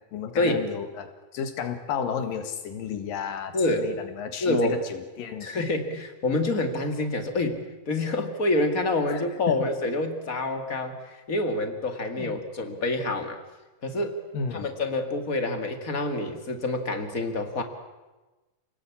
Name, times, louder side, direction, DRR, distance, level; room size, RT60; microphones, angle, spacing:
voice 1, 0.0-5.5 9.1-9.2 9.5-9.6 12.2-12.4 14.3-14.7, left 7 dB, 85° left, 7 dB, 3.5 m, -33 dB
voice 2, 3.5-3.9 4.4-4.8 5.4-13.4 13.8-14.2 14.5-17.6, left 2 dB, 30° left, 6 dB, 2.2 m, -27 dB
28.5 x 19.0 x 8.6 m, 1.2 s
omnidirectional pair, 3.8 m